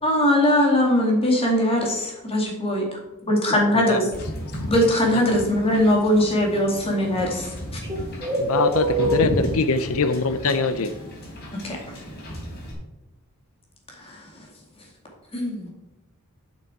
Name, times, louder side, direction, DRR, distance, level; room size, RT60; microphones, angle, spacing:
voice 1, 0.0-2.9 3.3-4.1 4.7-7.5 11.6-11.8 14.0-14.2 15.3-15.7, left 1 dB, 25° left, 0 dB, 2.3 m, -20 dB
Wind / Boat Water vehicle, 4.1-12.7, equal, 50° left, 3.4 m, -34 dB
voice 2, 7.9-9.2, right 2 dB, 20° right, -1 dB, 3.0 m, -24 dB
voice 3, 8.4-10.9, left 4 dB, 70° left, 10 dB, 0.6 m, -23 dB
10.5 x 6.2 x 4.8 m, 0.95 s
head